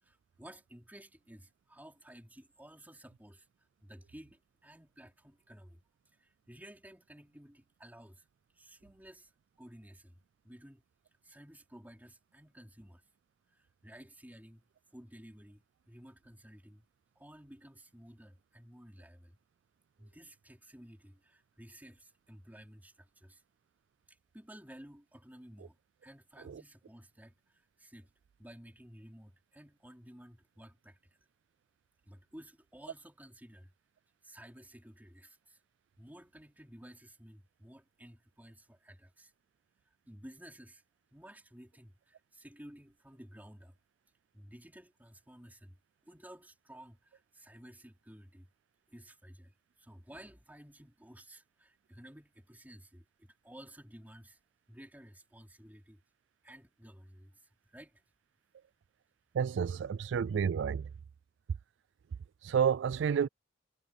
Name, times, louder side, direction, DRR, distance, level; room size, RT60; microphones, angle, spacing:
voice 1, 0.0-3.5 3.8-5.8 6.2-8.3 8.5-9.3 9.6-10.8 11.2-13.0 13.5-14.6 14.9-16.9 17.2-19.4 20.0-23.4 24.1-25.8 26.0-28.1 28.4-31.2 32.1-33.7 34.2-35.6 36.0-39.3 40.1-40.8 41.1-43.8 44.3-45.8 46.0-48.5 48.9-54.4 54.7-56.0 56.4-57.4 57.6-58.0, equal, 10° right, 3.9 m, -54 dB
voice 2, 59.3-60.9 62.4-63.3, right 7 dB, 70° right, 0.3 m, -30 dB
head